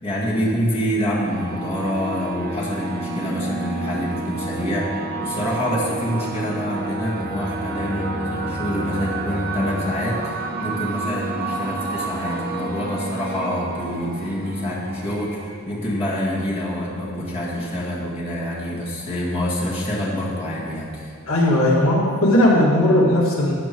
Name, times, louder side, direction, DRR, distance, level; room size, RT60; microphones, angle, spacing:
voice 1, 0.0-21.1, equal, 30° left, -6 dB, 2.1 m, -26 dB
sound 1, 1.3-16.6, right 3 dB, 50° right, 1.1 m, -30 dB
voice 2, 21.3-23.5, left 1 dB, 80° left, -3 dB, 2.1 m, -17 dB
13.0 x 8.1 x 4.6 m, 2.1 s
head